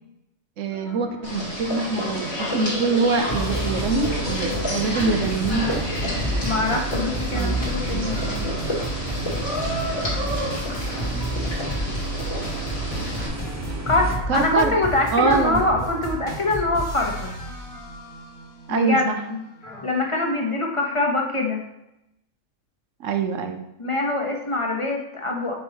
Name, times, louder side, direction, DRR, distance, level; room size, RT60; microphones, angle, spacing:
voice 1, 0.6-5.9 6.2-6.4 7.3-7.6 7.9-8.1 14.3-14.7 15.1-15.6 18.7-19.2 23.0-23.6, right 4 dB, 70° right, 6 dB, 1.1 m, -24 dB
sound 1, 0.7-19.9, right 1 dB, 50° left, 1.7 m, -31 dB
sound 2, 1.2-13.3, left 1 dB, 75° left, 2.8 m, -30 dB
sound 3, 3.2-14.2, right 3 dB, 15° right, 0.6 m, -35 dB
voice 2, 6.4-8.4 13.9-17.3 18.7-19.4 19.8-21.6 23.8-25.5, left 2 dB, 25° left, 1 dB, 1.0 m, -24 dB
8.2 x 5.4 x 3.0 m, 0.87 s
omnidirectional pair, 1.4 m